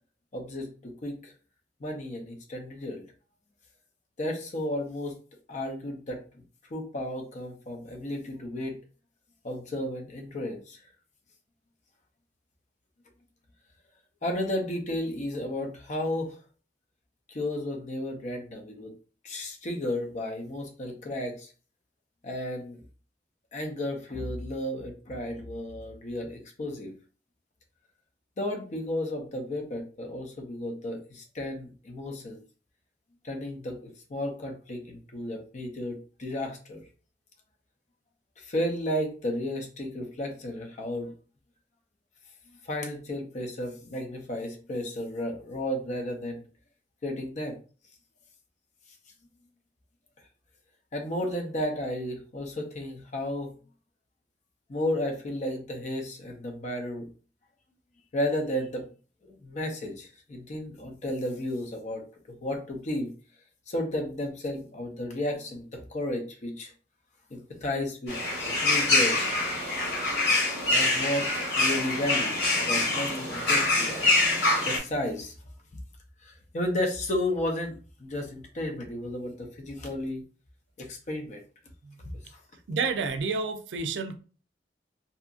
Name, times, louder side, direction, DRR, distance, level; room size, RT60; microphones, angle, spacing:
voice 1, 0.3-1.3 1.8-3.0 4.2-5.2 5.5-6.4 6.7-8.8 9.4-10.8 14.2-16.4 17.3-18.9 19.2-21.5 22.2-22.8 23.5-26.9 28.4-32.4 33.2-36.8 38.4-41.1 42.6-46.5 47.0-47.6 50.9-53.5 54.7-57.1 58.1-58.9 59.2-62.0 62.4-63.1 63.7-66.7 67.3-69.3 70.7-74.1 74.7-75.3 76.2-80.2 80.8-81.4 82.3-82.4, left 1 dB, 45° left, 0.5 m, -33 dB
sound 1, 68.1-74.8, left 2 dB, 70° left, 1.5 m, -25 dB
voice 2, 82.7-84.2, right 4 dB, 90° right, 0.4 m, -29 dB
2.7 x 2.4 x 2.4 m
head